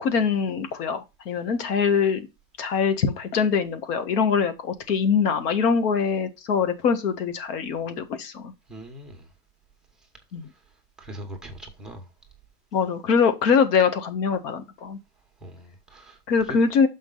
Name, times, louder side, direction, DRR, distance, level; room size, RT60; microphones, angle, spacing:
voice 1, 0.0-2.3 2.6-8.5 10.3-10.5 12.7-15.0 16.3-16.9, left 6 dB, 80° left, 1.8 m, -23 dB
voice 2, 8.7-9.2 11.0-12.1 15.4-16.2, right 1 dB, ahead, 1.2 m, -41 dB
6.9 x 5.1 x 4.0 m
supercardioid pair, 170°, 47 cm